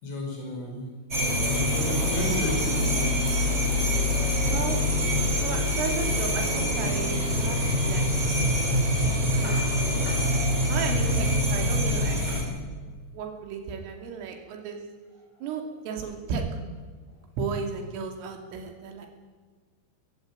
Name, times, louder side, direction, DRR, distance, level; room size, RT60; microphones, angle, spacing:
voice 1, 0.0-0.9 1.4-3.1, left 1 dB, 70° left, 1 dB, 7.4 m, -32 dB
sound 1, 1.1-12.4, left 1 dB, 15° right, 7.0 m, -25 dB
voice 2, 4.4-4.8 5.4-8.5 9.0-10.1 10.7-12.2 13.1-14.8 15.4-16.5 17.4-19.1, right 6 dB, 85° right, 3 dB, 5.3 m, -34 dB
20.0 x 16.5 x 9.4 m, 1.5 s
omnidirectional pair, 5.7 m